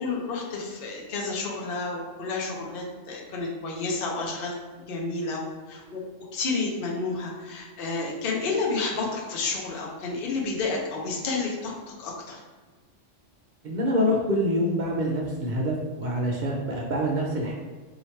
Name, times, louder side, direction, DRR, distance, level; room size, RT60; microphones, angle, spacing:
voice 1, 0.0-6.0 6.3-11.7 12.0-12.4, left 3 dB, 50° left, -2 dB, 0.8 m, -30 dB
voice 2, 13.6-17.5, equal, 55° right, -2 dB, 0.5 m, -26 dB
2.9 x 2.8 x 4.3 m, 1.3 s
omnidirectional pair, 1.3 m